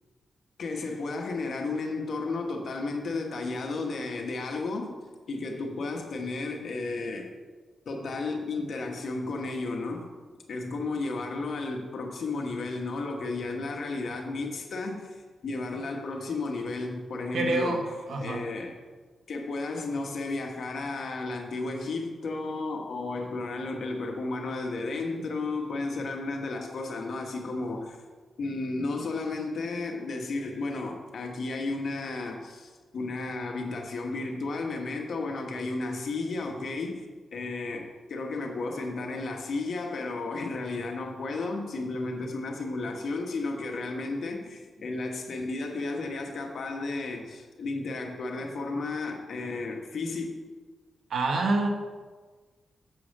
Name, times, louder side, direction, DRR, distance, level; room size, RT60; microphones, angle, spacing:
voice 1, 0.6-4.9 5.3-7.3 7.9-10.1 10.5-17.9 18.2-18.8 19.3-28.0 28.4-50.3, left 3 dB, 65° left, 3 dB, 1.1 m, -33 dB
voice 2, 17.3-17.8 18.1-18.4 51.1-51.7, right 3 dB, 75° right, 2 dB, 1.1 m, -26 dB
6.9 x 4.9 x 6.4 m, 1.4 s
cardioid pair, 95°, 0 cm